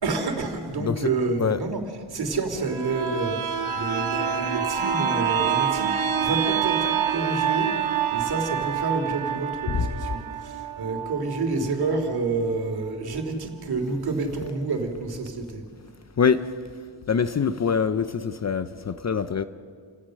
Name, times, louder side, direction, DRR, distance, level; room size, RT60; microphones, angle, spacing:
voice 1, 0.0-1.8 2.1-7.7 8.1-15.6, right 3 dB, 50° right, 3.1 m, -29 dB
voice 2, 0.8-1.1 1.4-1.6 9.7-9.8 16.2-16.4 17.1-19.4, left 6 dB, 35° left, 0.6 m, -24 dB
sound 1, 2.6-12.2 12.6-12.7, right 8 dB, 75° right, 2.1 m, -27 dB
30.0 x 17.5 x 6.5 m
wide cardioid pair, 145°, 47 cm